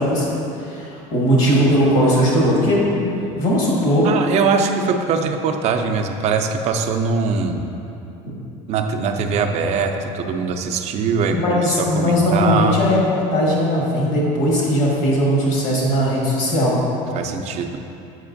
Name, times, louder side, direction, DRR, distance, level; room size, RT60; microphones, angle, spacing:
voice 1, 0.0-4.1 11.3-16.8, equal, 70° left, -4 dB, 1.4 m, -19 dB
voice 2, 4.0-7.6 8.7-12.8 17.1-17.8, right 5 dB, 45° right, 5 dB, 0.4 m, -21 dB
7.6 x 4.9 x 2.6 m, 2.8 s
cardioid pair, 130°, 15 cm